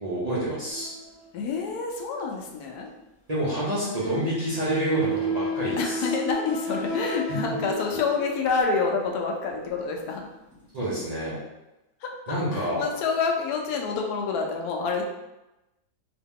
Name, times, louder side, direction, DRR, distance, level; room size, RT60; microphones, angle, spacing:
voice 1, 0.0-0.9 3.3-6.0 7.3-7.4 10.7-11.3 12.3-12.8, equal, 35° right, -9 dB, 0.8 m, -28 dB
sound 1, 0.7-1.7 3.7-8.8 9.5-9.7 10.5-10.6, right 2 dB, 10° left, 1.3 m, -32 dB
voice 2, 1.3-2.9 5.8-10.3 12.0-15.0, left 5 dB, 85° left, 1 dB, 1.1 m, -28 dB
2.9 x 2.8 x 3.6 m, 0.98 s
omnidirectional pair, 1.6 m